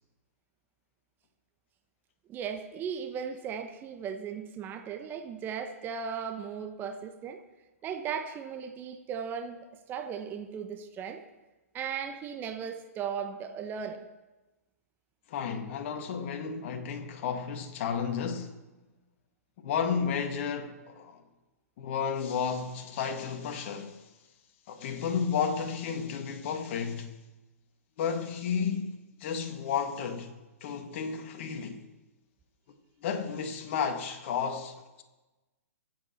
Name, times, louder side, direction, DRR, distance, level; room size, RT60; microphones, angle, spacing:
voice 1, 2.3-7.4 7.8-11.2 11.7-14.1, right 7 dB, 25° right, 1.1 m, -37 dB
voice 2, 15.3-18.6 19.6-21.2 21.8-24.1 24.7-27.1 28.0-30.3 30.6-31.8 33.0-35.0, left 6 dB, 50° left, 1.9 m, -32 dB
24.0 x 8.2 x 4.4 m
figure-of-eight pair, 120°, 8 cm